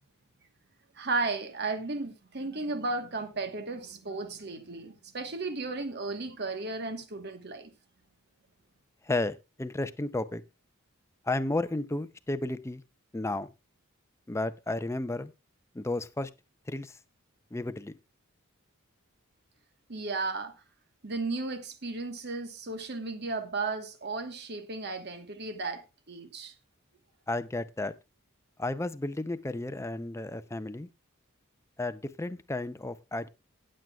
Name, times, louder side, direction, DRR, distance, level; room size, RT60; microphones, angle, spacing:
voice 1, 0.9-7.7 19.9-20.5 21.0-26.5, right 3 dB, 50° right, 1.3 m, -34 dB
voice 2, 9.0-10.4 11.2-12.8 13.1-13.5 14.3-15.3 15.7-16.3 16.7-17.0 17.5-17.9 27.3-27.9 28.6-30.9 31.8-33.3, left 2 dB, 15° left, 0.5 m, -33 dB
18.5 x 7.7 x 2.3 m
head